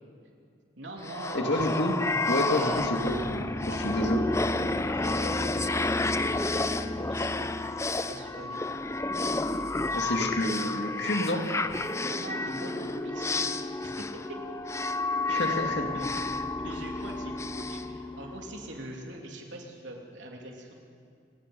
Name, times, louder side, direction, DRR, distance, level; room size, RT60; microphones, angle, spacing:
voice 1, 0.8-1.8 2.4-2.9 3.6-7.6 8.0-8.6 12.0-13.6 14.0-14.1 15.3-15.6 15.9-16.0 16.6-20.7, right 1 dB, 85° right, 0 dB, 3.3 m, -42 dB
sound 1, 1.0-18.7, left 2 dB, 15° left, 0.6 m, -31 dB
voice 2, 1.3-1.9 2.3-4.2 9.9-11.5 15.3-15.9, left 1 dB, 70° left, 3 dB, 2.5 m, -28 dB
29.0 x 18.0 x 5.5 m, 2.4 s
head